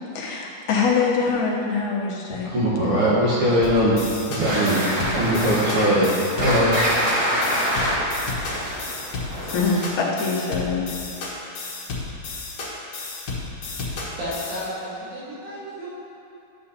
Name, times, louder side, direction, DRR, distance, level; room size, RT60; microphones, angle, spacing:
voice 1, 0.2-2.5 9.4-10.9, left 4 dB, 75° left, -3 dB, 2.4 m, -24 dB
voice 2, 2.4-4.0 4.3-4.8 5.1-6.1 6.4-6.8 7.0-7.1, equal, 55° right, -10 dB, 1.9 m, -20 dB
sound 1, 3.6-14.7, left 3 dB, 55° left, 2.2 m, -33 dB
sound 2, 4.4-10.1, equal, 30° right, 1.6 m, -25 dB
voice 3, 13.9-15.9, equal, 70° right, -8 dB, 2.8 m, -33 dB
12.0 x 7.8 x 2.8 m, 2.6 s
omnidirectional pair, 3.7 m